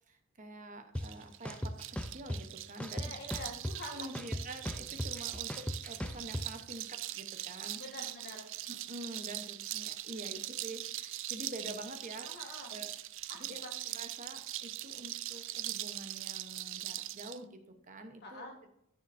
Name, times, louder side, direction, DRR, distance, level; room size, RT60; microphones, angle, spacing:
voice 1, 0.1-3.1 3.9-7.8 8.7-12.3 12.7-12.9 13.4-13.6 14.0-18.4, right 1 dB, 35° right, 6 dB, 1.0 m, -47 dB
sound 1, 0.9-1.0 1.4-2.4 2.8-3.9 4.1-6.4, left 1 dB, 5° left, 0.5 m, -37 dB
sound 2, 1.0-17.4, right 14 dB, 55° right, 0.4 m, -42 dB
voice 2, 2.9-4.1 7.7-8.5 12.2-12.7 13.3-14.0 18.2-18.6, left 1 dB, 45° left, 0 dB, 2.0 m, -46 dB
13.0 x 6.8 x 2.7 m, 0.77 s
head